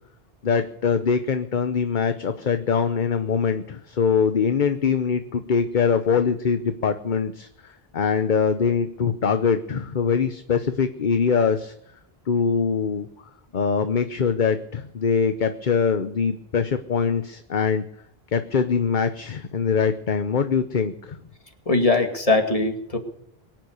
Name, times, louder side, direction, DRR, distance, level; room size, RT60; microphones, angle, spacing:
voice 1, 0.4-11.7 12.3-13.1 13.5-17.8 18.3-21.2, left 6 dB, 50° left, 9 dB, 1.0 m, -23 dB
voice 2, 21.7-23.0, left 3 dB, 35° left, 5 dB, 2.4 m, -21 dB
23.0 x 9.3 x 6.6 m, 0.74 s
omnidirectional pair, 1.0 m